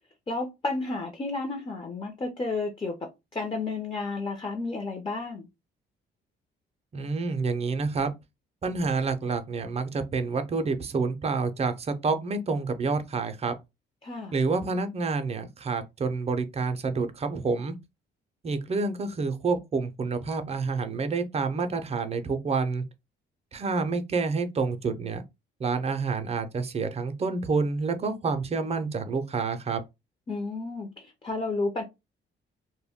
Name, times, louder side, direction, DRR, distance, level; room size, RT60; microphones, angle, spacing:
voice 1, 0.3-3.0 3.3-5.5 14.0-14.3 30.3-31.8, left 3 dB, 25° left, 0.6 m, -32 dB
voice 2, 6.9-8.1 8.6-13.5 14.3-17.7 18.4-22.8 23.5-25.2 25.6-29.8, right 4 dB, 30° right, 0.5 m, -28 dB
2.1 x 2.1 x 3.5 m
cardioid pair, 90°, 20 cm